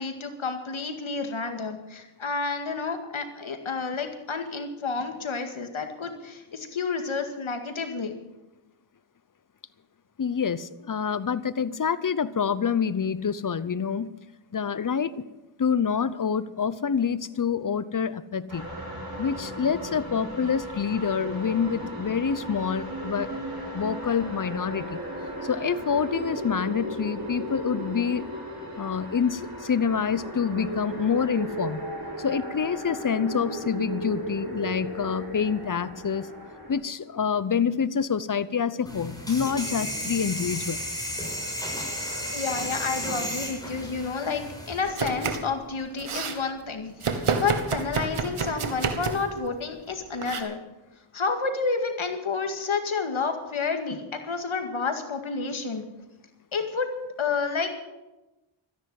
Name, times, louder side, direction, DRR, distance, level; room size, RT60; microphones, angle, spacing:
voice 1, 0.0-8.1 42.3-50.6 51.1-55.8 56.5-56.9 57.2-57.7, left 4 dB, 70° left, 6 dB, 2.1 m, -30 dB
voice 2, 10.2-14.1 14.5-15.2 15.6-18.6 19.2-23.4 23.7-25.0 25.4-28.3 28.8-31.8 32.2-36.3 36.7-40.8, left 6 dB, 40° left, 16 dB, 0.8 m, -27 dB
sound 1, 18.5-36.7, right 1 dB, 45° right, 6.0 m, -36 dB
sound 2, 38.9-44.8, equal, 5° left, 6.9 m, -33 dB
Domestic sounds home sounds, 44.8-45.5 45.8-46.4 47.0-49.3 50.2-50.4, right 5 dB, 85° right, 1.4 m, -29 dB
13.5 x 10.5 x 7.8 m, 1.0 s
cardioid pair, 45°, 49 cm